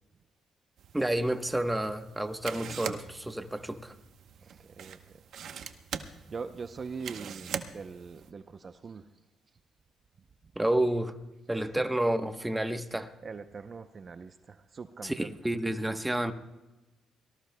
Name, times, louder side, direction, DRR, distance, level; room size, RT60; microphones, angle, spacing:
sound 1, 0.8-8.3, right 8 dB, 70° right, 0.9 m, -43 dB
voice 1, 0.9-3.9 10.5-11.2 11.5-13.1 15.0-16.3, right 1 dB, 10° right, 1.0 m, -30 dB
voice 2, 4.4-5.2 6.3-9.1 11.5-11.8 13.2-15.4, right 5 dB, 40° right, 0.6 m, -42 dB
24.0 x 18.5 x 2.2 m
cardioid pair, 90°, 0 cm